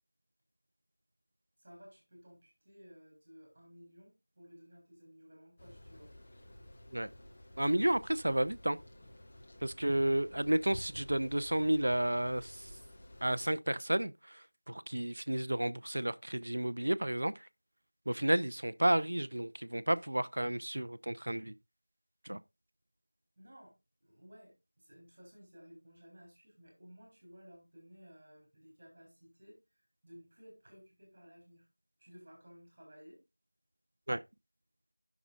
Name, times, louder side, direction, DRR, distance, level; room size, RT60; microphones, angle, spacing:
voice 1, 1.6-6.1 10.3-10.6 23.4-23.7 24.0-31.7 32.0-33.2, equal, 15° right, 3.4 m, -57 dB
sound 1, 5.6-13.5, left 1 dB, 15° left, 0.8 m, -52 dB
voice 2, 7.6-8.8 9.6-12.7 13.2-17.5 18.1-21.5 22.3-22.4 34.1-34.2, right 1 dB, 45° right, 0.4 m, -32 dB
17.5 x 6.0 x 2.4 m
figure-of-eight pair, 175°, 0 cm